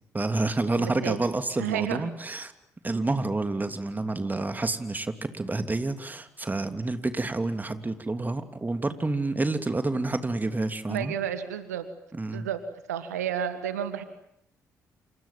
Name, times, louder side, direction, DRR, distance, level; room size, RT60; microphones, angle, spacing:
voice 1, 0.1-2.5 2.8-11.1 12.1-12.5, right 2 dB, 20° right, 9 dB, 3.0 m, -29 dB
voice 2, 0.7-1.2 1.6-2.1 10.9-11.9 12.3-12.6 12.9-14.0, right 9 dB, 85° right, 11 dB, 1.7 m, -31 dB
28.0 x 27.5 x 7.5 m, 0.74 s
figure-of-eight pair, 45°, 8 cm